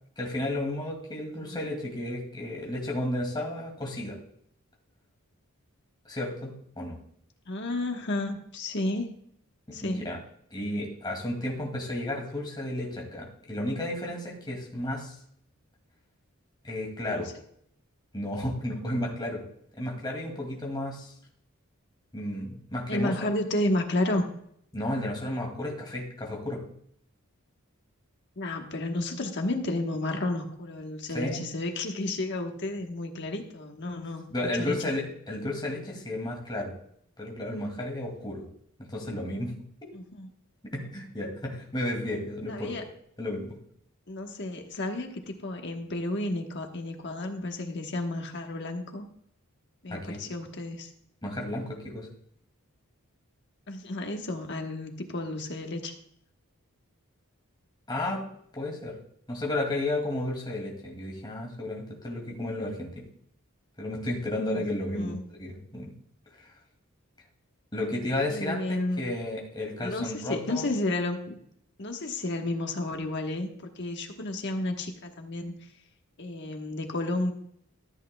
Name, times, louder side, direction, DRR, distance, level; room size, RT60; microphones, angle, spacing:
voice 1, 0.2-4.2 6.1-7.0 9.7-10.2 10.5-15.1 16.6-17.3 18.1-19.4 19.8-21.1 22.1-23.3 24.7-26.6 31.1-31.4 34.3-36.7 37.2-38.4 38.9-39.5 40.7-42.9 43.2-43.6 49.9-50.2 51.2-52.1 57.9-58.2 58.5-58.9 59.3-63.0 63.8-65.9 67.7-70.7, left 1 dB, 20° left, -1 dB, 2.4 m, -33 dB
voice 2, 7.5-9.2 9.7-10.1 17.1-17.2 22.9-24.3 28.4-34.2 34.6-34.9 39.9-40.3 42.5-42.8 44.1-49.0 49.8-50.9 53.7-55.9 64.5-64.6 64.9-65.3 68.3-69.0 69.8-71.4 71.8-75.7 76.2-77.3, left 2 dB, 50° left, 4 dB, 1.3 m, -32 dB
14.0 x 8.5 x 2.3 m, 0.66 s
head